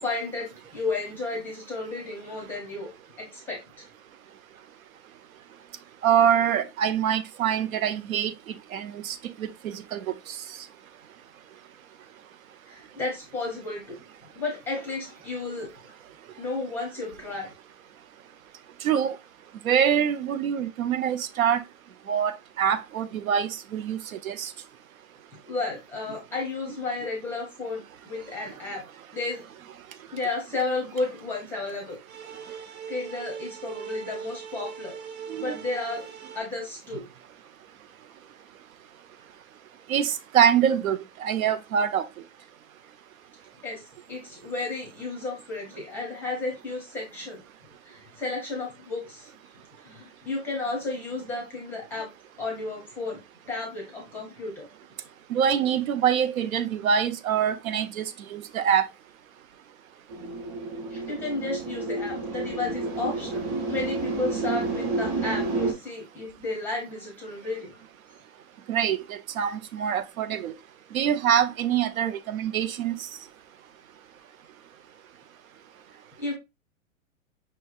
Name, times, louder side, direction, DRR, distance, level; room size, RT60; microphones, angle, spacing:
voice 1, 0.0-2.9 3.3-3.6 12.7-14.0 14.3-15.7 16.4-17.5 25.5-28.8 29.1-29.4 30.1-32.0 32.9-35.0 35.4-36.1 36.3-37.0 43.6-47.4 47.8-49.3 49.8-52.1 52.4-53.2 53.5-54.7 60.9-67.8 76.2-76.4, left 3 dB, 5° left, 0.6 m, -33 dB
voice 2, 6.0-8.3 8.7-10.0 18.8-19.2 19.6-21.6 22.1-24.0 24.2-24.5 35.3-35.6 39.9-42.0 55.3-58.0 58.3-58.9 68.7-70.5 70.9-73.0, right 8 dB, 80° right, 0.7 m, -25 dB
sound 1, 32.1-36.4, right 7 dB, 50° right, 1.2 m, -40 dB
sound 2, 60.1-65.7, right 3 dB, 25° right, 1.0 m, -30 dB
5.6 x 3.1 x 2.3 m
hypercardioid pair, 160°, 41 cm